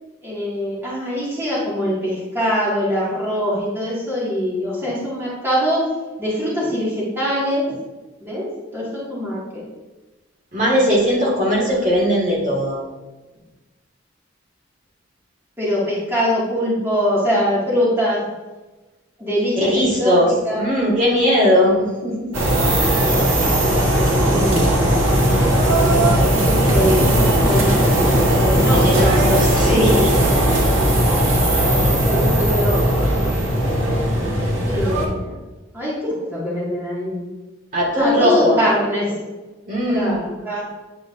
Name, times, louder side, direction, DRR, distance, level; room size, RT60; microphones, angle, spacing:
voice 1, 0.2-5.9 6.2-7.6 8.2-8.5 8.7-9.6 15.6-18.2 19.2-20.2 20.4-20.6 22.5-23.3 24.2-24.7 25.0-29.1 30.3-30.4 31.8-32.9 34.6-35.4 35.7-37.3 38.0-39.2 39.9-40.7, equal, 10° right, -8 dB, 2.0 m, -23 dB
voice 2, 10.5-12.8 19.6-22.3 28.7-30.1 37.7-38.6 39.7-40.2, equal, 40° right, -5 dB, 2.0 m, -18 dB
sound 1, 22.3-35.1, right 1 dB, 80° right, 1.5 m, -17 dB
9.1 x 4.9 x 2.6 m, 1.2 s
head